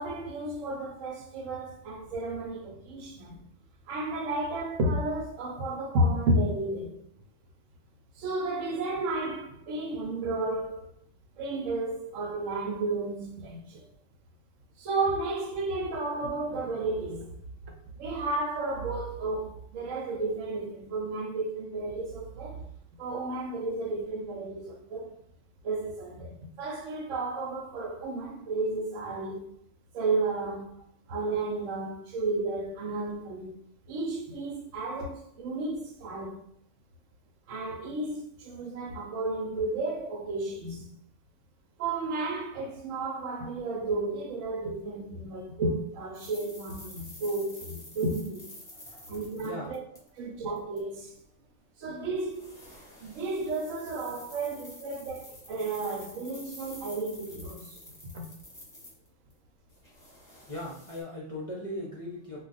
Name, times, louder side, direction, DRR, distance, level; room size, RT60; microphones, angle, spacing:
voice 1, 0.0-3.4 3.9-7.1 8.2-10.9 11.4-13.9 14.8-17.4 17.6-17.7 18.0-22.6 23.0-25.1 25.6-29.4 29.9-30.8 31.1-33.5 33.9-36.4 37.5-40.9 41.8-48.5 49.1-49.8 50.2-51.2 51.8-52.7 53.0-57.8 58.1-58.3, right 2 dB, 85° right, 1.0 m, -32 dB
sound 1, 46.1-50.2 50.6-50.8 52.2-59.3 59.7-61.0, left 1 dB, 20° left, 1.0 m, -49 dB
voice 2, 48.7-50.5 60.5-62.4, left 1 dB, 40° left, 0.5 m, -40 dB
2.3 x 2.3 x 3.9 m
omnidirectional pair, 1.3 m